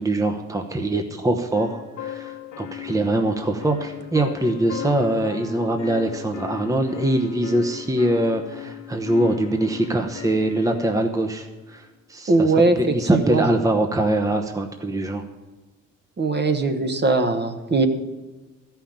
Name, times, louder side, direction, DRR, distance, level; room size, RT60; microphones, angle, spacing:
voice 1, 0.0-15.2, right 1 dB, 10° right, 5 dB, 0.9 m, -23 dB
sound 1, 1.5-11.0, left 11 dB, 60° left, 1.4 m, -37 dB
voice 2, 12.3-13.5 16.2-17.9, right 3 dB, 35° right, 7 dB, 1.2 m, -20 dB
13.0 x 5.8 x 8.6 m, 1.2 s
cardioid pair, 90°, 30 cm